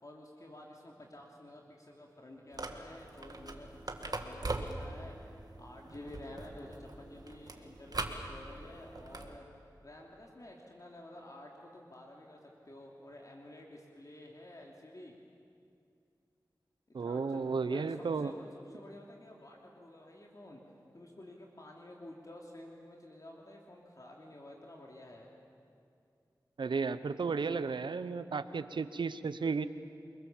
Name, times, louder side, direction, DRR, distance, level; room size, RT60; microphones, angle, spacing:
voice 1, 0.0-5.2 5.6-9.5 9.8-15.1 17.0-25.3, left 1 dB, 50° left, -1 dB, 2.9 m, -51 dB
sound 1, 2.5-9.4, right 2 dB, 55° right, 2.1 m, -42 dB
voice 2, 16.9-18.3 26.6-29.7, right 4 dB, 90° right, 13 dB, 0.8 m, -33 dB
29.5 x 21.0 x 7.3 m, 2.5 s
cardioid pair, 45°, 8 cm